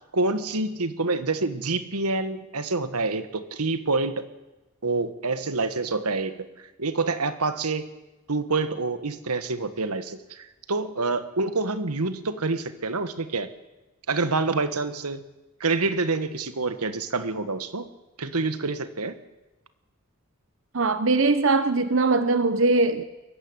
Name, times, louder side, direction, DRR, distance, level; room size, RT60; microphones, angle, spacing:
voice 1, 0.1-4.3 4.8-6.5 6.8-7.9 8.3-13.5 14.1-15.2 15.6-17.9 18.2-19.1, right 3 dB, 90° right, 11 dB, 1.6 m, -27 dB
voice 2, 20.7-23.0, right 3 dB, 60° right, 11 dB, 1.0 m, -21 dB
22.5 x 15.5 x 9.9 m, 1.1 s
head